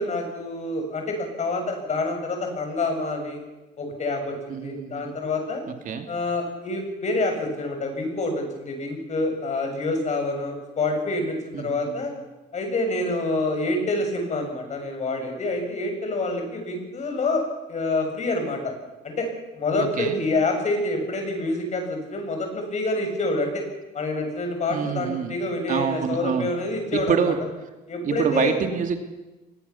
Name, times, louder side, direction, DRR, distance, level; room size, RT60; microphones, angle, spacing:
voice 1, 0.0-3.4 3.8-5.6 6.1-12.1 12.5-17.4 17.7-18.7 19.0-19.3 19.5-23.6 23.9-27.3 27.9-28.5, left 2 dB, 45° left, 4 dB, 7.3 m, -27 dB
voice 2, 4.5-5.2 5.8-6.1 11.5-12.0 19.8-20.2 24.7-25.4 25.7-26.5 26.9-27.4 28.0-29.0, right 7 dB, 50° right, 6 dB, 2.7 m, -26 dB
23.5 x 20.0 x 7.2 m, 1.1 s
cardioid pair, 110°, 17 cm